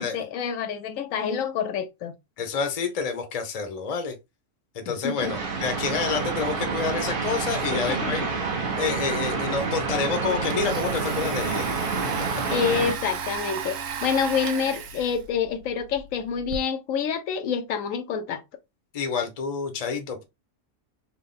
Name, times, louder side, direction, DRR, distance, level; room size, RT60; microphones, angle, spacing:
voice 1, 0.0-2.1 4.9-5.4 7.7-8.3 12.5-18.4, left 7 dB, 85° left, 1.0 m, -27 dB
voice 2, 2.4-4.1 4.7-8.2 8.8-11.7 18.9-20.2, left 5 dB, 35° left, 0.6 m, -28 dB
sound 1, 5.2-12.9, right 4 dB, 50° right, 0.9 m, -28 dB
Domestic sounds home sounds, 9.6-9.7 10.0-16.6, right 6 dB, 80° right, 1.0 m, -35 dB
3.5 x 2.1 x 3.7 m
omnidirectional pair, 1.4 m